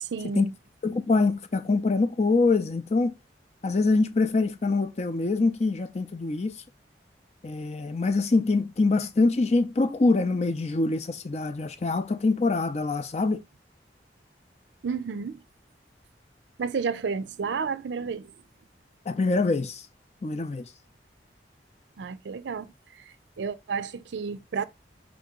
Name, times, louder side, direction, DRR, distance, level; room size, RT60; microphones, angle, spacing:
voice 1, 0.0-0.5 14.8-15.4 16.6-18.3 22.0-24.7, right 5 dB, 80° right, 0.4 m, -32 dB
voice 2, 0.8-3.1 3.6-6.5 7.4-13.4 19.1-19.8 20.2-20.7, left 3 dB, 35° left, 0.4 m, -24 dB
4.9 x 2.8 x 3.6 m
head